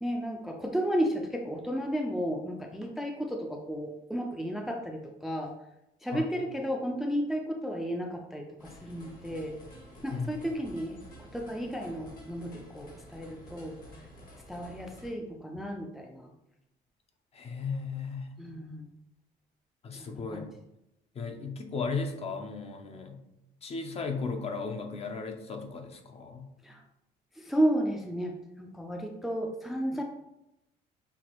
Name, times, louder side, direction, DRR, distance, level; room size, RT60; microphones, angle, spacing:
voice 1, 0.0-5.5 6.0-9.6 10.0-11.0 11.3-13.8 14.5-16.3 18.4-18.9 19.9-20.4 26.6-26.8 27.4-30.0, equal, ahead, 2 dB, 0.4 m, -33 dB
sound 1, 8.6-15.1, equal, 55° left, 1.5 m, -50 dB
voice 2, 10.1-10.4 17.3-18.3 19.8-20.5 21.1-23.2 23.6-26.5, left 4 dB, 40° left, 5 dB, 0.6 m, -35 dB
5.8 x 2.5 x 3.0 m, 0.87 s
cardioid pair, 110°, 17 cm